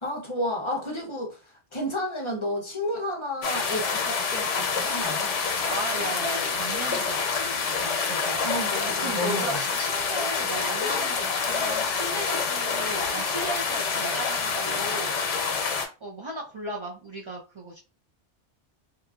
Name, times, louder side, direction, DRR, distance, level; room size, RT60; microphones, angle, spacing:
voice 1, 0.0-5.3 8.4-9.6, left 1 dB, 35° left, 0.6 m, -31 dB
sound 1, 3.4-15.9, left 5 dB, 90° left, 1.0 m, -27 dB
voice 2, 5.7-8.5 8.8-15.1 16.0-17.8, right 1 dB, 50° right, 0.3 m, -36 dB
3.0 x 2.5 x 2.3 m
omnidirectional pair, 1.2 m